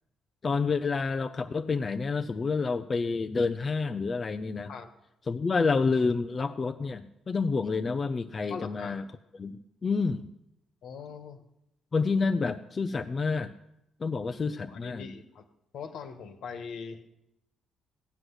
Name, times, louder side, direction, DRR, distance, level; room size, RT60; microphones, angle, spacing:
voice 1, 0.4-4.7 5.3-9.0 9.3-9.5 9.8-10.3 11.9-13.5 14.0-15.1, left 4 dB, 35° left, 6 dB, 0.7 m, -28 dB
voice 2, 8.5-8.9 10.8-11.4 14.7-15.4 15.7-17.1, left 6 dB, 70° left, 7 dB, 1.6 m, -41 dB
16.5 x 6.3 x 9.9 m, 0.85 s
cardioid pair, 90°, 0 cm